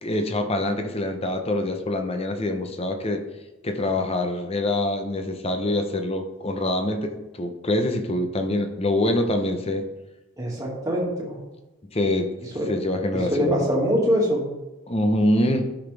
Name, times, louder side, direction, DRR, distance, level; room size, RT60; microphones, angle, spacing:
voice 1, 0.0-3.2 3.6-9.8 11.9-12.3 12.7-13.7 14.9-15.7, left 1 dB, 30° left, 5 dB, 0.8 m, -25 dB
voice 2, 10.4-11.4 12.5-12.7 13.3-14.5, equal, 15° right, -4 dB, 2.1 m, -23 dB
11.5 x 6.1 x 3.4 m, 1.1 s
head